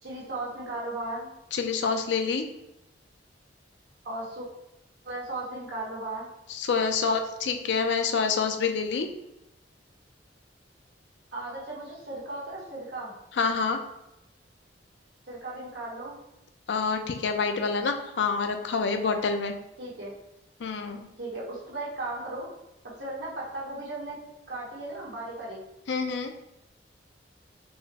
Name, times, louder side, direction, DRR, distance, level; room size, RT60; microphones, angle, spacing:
voice 1, 0.0-1.3 4.0-4.5 5.0-6.3 11.3-13.1 15.3-16.2 19.8-20.1 21.2-22.5 22.8-24.2 24.5-25.6, right 2 dB, 75° right, -5 dB, 1.3 m, -36 dB
voice 2, 1.5-2.4 6.5-9.1 13.4-13.8 16.7-19.5 20.6-21.1 25.9-26.3, left 5 dB, 80° left, 6 dB, 0.4 m, -27 dB
4.4 x 2.0 x 3.3 m, 0.88 s
head